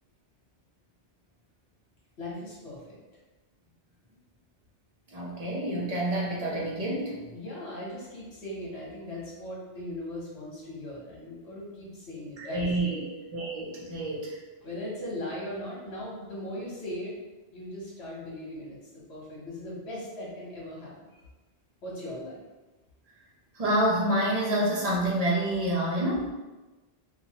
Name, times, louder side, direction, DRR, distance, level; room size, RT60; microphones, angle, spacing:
voice 1, 2.2-3.0 7.3-13.0 14.6-17.2 17.5-21.2 21.8-22.4, left 1 dB, 70° left, -5 dB, 1.2 m, -39 dB
voice 2, 5.1-7.2 12.4-13.1 13.3-14.4 23.6-26.3, right 1 dB, 40° right, -4 dB, 0.7 m, -28 dB
3.0 x 2.3 x 2.8 m, 1.2 s
omnidirectional pair, 1.1 m